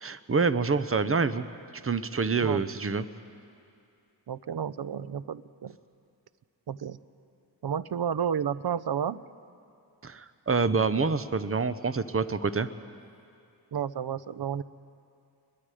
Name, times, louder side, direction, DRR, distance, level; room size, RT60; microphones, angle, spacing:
voice 1, 0.0-1.4 1.8-3.1 10.0-12.7, right 4 dB, 30° right, 13 dB, 0.8 m, -27 dB
voice 2, 4.3-5.8 6.7-7.0 7.6-9.2 13.7-14.6, right 8 dB, 60° right, 16 dB, 0.7 m, -31 dB
29.5 x 21.5 x 5.0 m, 2.5 s
cardioid pair, 60°, 43 cm